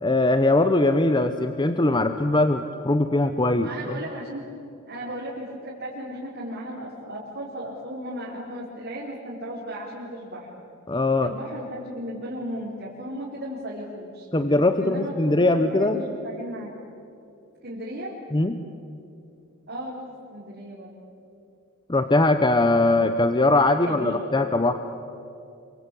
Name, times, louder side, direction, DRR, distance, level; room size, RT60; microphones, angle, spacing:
voice 1, 0.0-3.7 10.9-11.3 14.3-16.0 18.3-18.6 21.9-24.8, left 2 dB, 20° left, 9 dB, 0.9 m, -21 dB
voice 2, 3.6-4.4 4.9-10.5 11.2-14.3 14.8-16.7 17.6-18.1 19.7-20.0 20.3-20.9 23.4-24.3, equal, 50° right, -7 dB, 4.8 m, -35 dB
28.5 x 24.0 x 8.7 m, 2.7 s
head